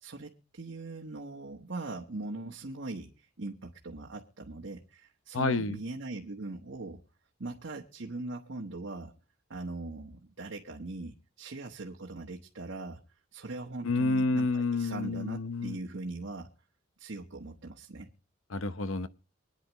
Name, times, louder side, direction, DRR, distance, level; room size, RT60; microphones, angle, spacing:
voice 1, 0.0-7.0 7.4-9.1 9.5-13.0 13.3-16.5 17.0-18.1, right 2 dB, 70° right, 1.2 m, -40 dB
voice 2, 5.3-5.8 13.8-15.8 18.5-19.1, left 3 dB, 80° left, 0.8 m, -29 dB
24.5 x 9.7 x 3.0 m
head